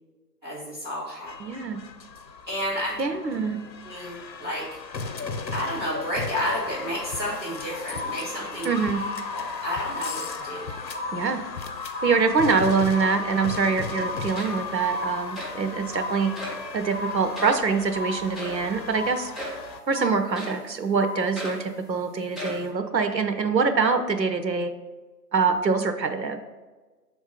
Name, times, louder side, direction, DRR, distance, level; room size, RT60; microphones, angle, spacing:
voice 1, 0.4-1.3 2.5-3.0 3.8-4.7 5.5-8.7 9.3-10.7, equal, 15° right, -15 dB, 1.8 m, -31 dB
sound 1, 1.3-19.8, left 4 dB, 85° left, 0.8 m, -36 dB
voice 2, 1.4-1.8 3.0-3.6 8.6-9.0 11.1-11.4 12.0-19.3 19.9-24.7 25.3-26.4, right 5 dB, 85° right, 7 dB, 0.9 m, -24 dB
sound 2, 7.3-7.6 7.9-8.6 8.9-9.6 9.9-10.6 10.9-11.6 11.9-12.6 12.9-13.6 13.9-14.6 14.9-15.6 15.9-16.6 16.9-17.6 17.9-18.6 18.9-19.6 19.9-20.6 20.9-21.6, left 2 dB, 50° left, 0.9 m, -35 dB
sound 3, 14.0-14.1 14.3-14.8 15.4-15.6 16.4-16.7 17.3-17.6 18.4-18.7 19.3-19.7 20.4-20.7 21.4-21.7 22.3-22.7, left 1 dB, ahead, 0.6 m, -36 dB
5.8 x 3.6 x 5.0 m, 1.3 s
figure-of-eight pair, 175°, 49 cm